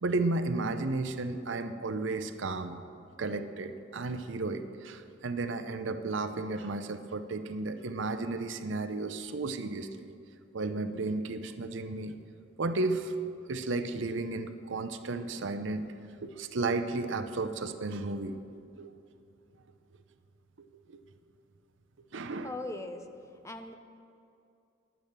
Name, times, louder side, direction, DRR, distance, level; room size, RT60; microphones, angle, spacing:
voice 1, 0.0-2.8 3.2-10.1 10.5-12.2 12.6-13.2 13.5-15.9 16.2-18.4 18.8-18.9 20.6-21.0 22.1-22.5, right 3 dB, 65° right, 9 dB, 0.6 m, -33 dB
voice 2, 22.4-23.7, left 2 dB, 15° left, 6 dB, 0.6 m, -40 dB
10.5 x 8.9 x 6.6 m, 2.5 s
head